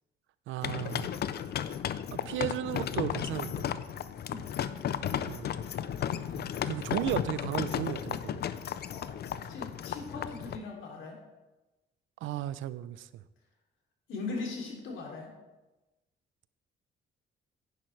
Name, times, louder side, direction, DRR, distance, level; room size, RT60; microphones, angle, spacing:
voice 1, 0.5-1.1 2.1-3.8 5.2-5.5 6.3-8.4 12.2-13.2, right 12 dB, 80° right, 0.5 m, -35 dB
sound 1, 0.6-10.6, left 9 dB, 55° left, 0.5 m, -34 dB
voice 2, 4.2-4.6 8.9-9.0 9.3-11.2 14.1-15.3, left 3 dB, 80° left, 2.9 m, -39 dB
10.5 x 9.9 x 3.2 m
cardioid pair, 90°, 20 cm